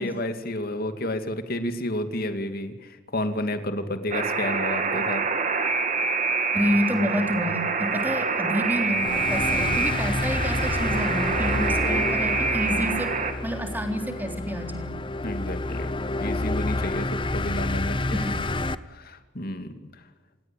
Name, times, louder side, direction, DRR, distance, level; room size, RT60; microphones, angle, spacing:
voice 1, 0.0-5.2 15.2-15.9 16.2-18.2 18.9-19.7, left 1 dB, 50° left, 8 dB, 2.5 m, -31 dB
Alarm, 4.1-13.3, right 4 dB, 40° right, 2.6 m, -26 dB
voice 2, 6.5-13.1 13.4-14.9 18.1-18.3, equal, 10° right, 4 dB, 3.6 m, -28 dB
sound 1, 8.9-18.7, left 2 dB, 25° left, 0.8 m, -29 dB
27.5 x 18.0 x 9.0 m, 1.3 s
head